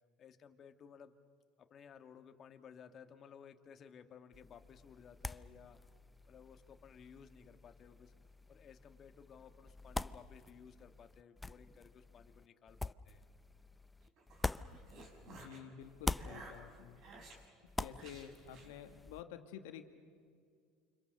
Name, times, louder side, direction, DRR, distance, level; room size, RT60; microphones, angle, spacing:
voice 1, 0.2-1.2 1.6-5.8 6.3-8.1 8.5-13.2, left 7 dB, 45° left, 7 dB, 1.6 m, -57 dB
sound 1, 4.3-15.5 15.8-19.2, left 2 dB, 10° left, 0.6 m, -46 dB
sound 2, 14.0-15.6 16.1-17.4 17.9-18.7, right 3 dB, 55° right, 5.8 m, -55 dB
voice 2, 15.3-17.0 17.8-19.8, left 9 dB, 80° left, 7 dB, 1.8 m, -50 dB
29.5 x 25.5 x 6.6 m, 2.2 s
supercardioid pair, 90°, 0 cm